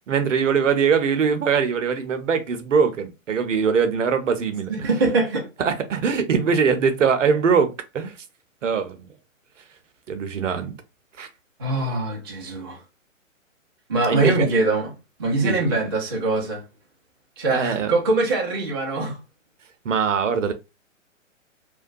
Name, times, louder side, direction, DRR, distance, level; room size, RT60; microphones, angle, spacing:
voice 1, 0.1-4.9 5.6-8.2 8.6-9.1 10.1-10.7 11.2-11.3 14.1-14.5 15.4-15.8 17.5-17.9 19.8-20.5, right 6 dB, 65° right, 0.7 m, -22 dB
voice 2, 4.7-5.5 11.6-12.8 13.9-14.9 15.2-16.6 17.4-19.2, right 2 dB, 20° right, 0.4 m, -23 dB
2.9 x 2.1 x 2.5 m
figure-of-eight pair, 125°, 40 cm